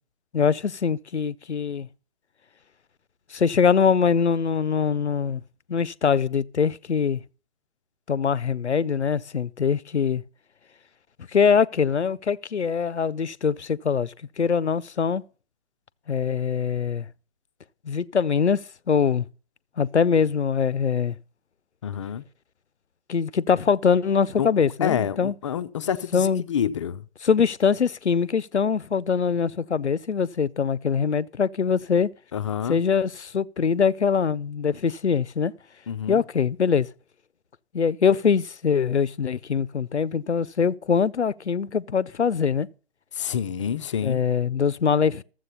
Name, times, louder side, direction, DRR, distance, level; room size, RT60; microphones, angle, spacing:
voice 1, 0.3-1.9 3.3-5.4 5.7-7.2 8.1-10.2 11.3-15.2 16.1-17.1 17.8-18.6 18.9-19.3 19.8-21.2 23.1-25.3 26.1-26.4 27.2-32.1 32.7-35.5 36.1-36.9 37.7-42.7 44.0-45.2, left 6 dB, 90° left, 0.6 m, -23 dB
voice 2, 21.8-22.2 24.4-24.5 24.8-27.0 32.3-32.8 35.9-36.2 43.1-44.2, left 8 dB, 30° left, 0.5 m, -28 dB
13.5 x 7.6 x 5.5 m
figure-of-eight pair, 130°, 33 cm